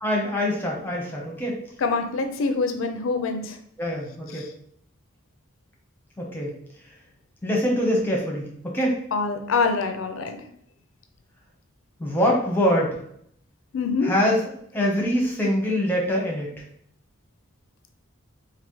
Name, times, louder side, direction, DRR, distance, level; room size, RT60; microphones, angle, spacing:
voice 1, 0.0-1.6 3.8-4.5 6.2-6.5 7.4-9.0 12.0-13.0 14.0-14.4 14.7-16.5, equal, 10° left, -2 dB, 0.8 m, -24 dB
voice 2, 1.8-3.6 9.1-10.4 13.7-14.1, left 4 dB, 80° left, 6 dB, 0.4 m, -25 dB
4.1 x 2.6 x 3.0 m, 0.67 s
head